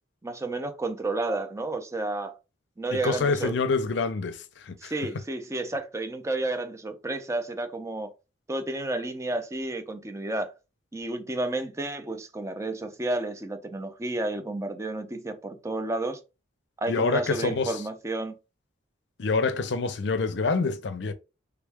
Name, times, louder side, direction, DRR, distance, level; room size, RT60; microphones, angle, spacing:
voice 1, 0.2-2.3 2.8-3.5 4.8-8.1 8.5-10.5 10.9-16.2 16.8-18.3, right 2 dB, 15° right, 0.4 m, -31 dB
voice 2, 2.9-4.9 16.9-17.8 19.2-21.1, left 4 dB, 60° left, 0.5 m, -26 dB
3.4 x 2.2 x 3.4 m
head